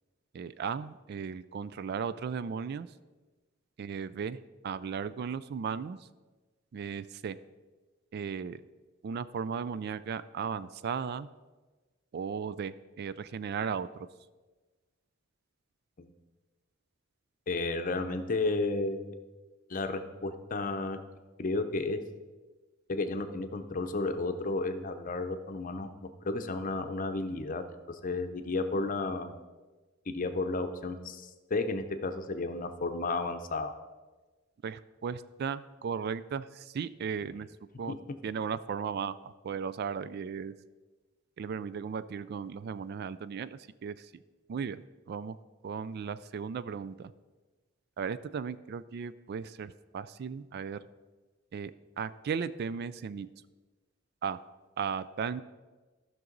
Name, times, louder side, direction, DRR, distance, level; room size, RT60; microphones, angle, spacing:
voice 1, 0.3-2.9 3.8-6.1 6.7-7.4 8.1-8.6 9.0-11.3 12.1-14.1 34.6-37.5 37.8-37.9 38.2-40.5 41.4-44.1 44.5-44.8 45.1-45.4 45.6-47.1 48.0-50.8 51.5-53.3 54.2-54.4 54.8-55.4, right 6 dB, 55° right, 15 dB, 0.3 m, -36 dB
voice 2, 17.5-19.2 19.7-21.0 21.4-22.0 22.9-25.9 26.2-29.4 30.1-33.7 37.9-38.0, left 3 dB, 40° left, 8 dB, 0.7 m, -32 dB
13.5 x 6.1 x 3.9 m, 1.3 s
head